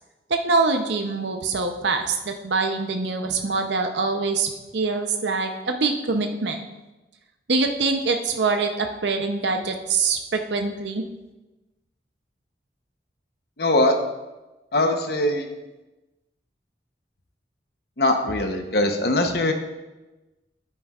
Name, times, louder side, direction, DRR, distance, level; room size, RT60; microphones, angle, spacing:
voice 1, 0.3-6.6 7.5-11.0, right 4 dB, 80° right, 5 dB, 0.7 m, -24 dB
voice 2, 13.6-14.0 14.7-15.5 18.0-19.5, left 1 dB, 60° left, 5 dB, 0.9 m, -21 dB
10.0 x 8.7 x 2.4 m, 1.1 s
head